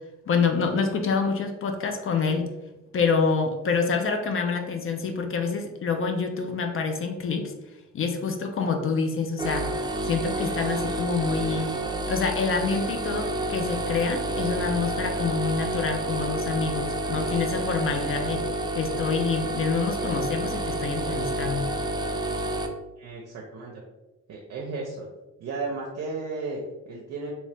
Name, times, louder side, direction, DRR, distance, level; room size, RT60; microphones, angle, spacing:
voice 1, 0.3-2.5 2.9-7.5 7.9-9.7 10.0-11.7 12.1-21.7, left 5 dB, 45° left, 5 dB, 0.5 m, -27 dB
sound 1, 9.4-22.7, right 1 dB, 15° right, 0.3 m, -29 dB
voice 2, 23.0-23.8 24.3-25.1 25.4-27.3, right 3 dB, 60° right, -2 dB, 0.6 m, -34 dB
2.8 x 2.7 x 3.3 m, 1.1 s
cardioid pair, 90°, 30 cm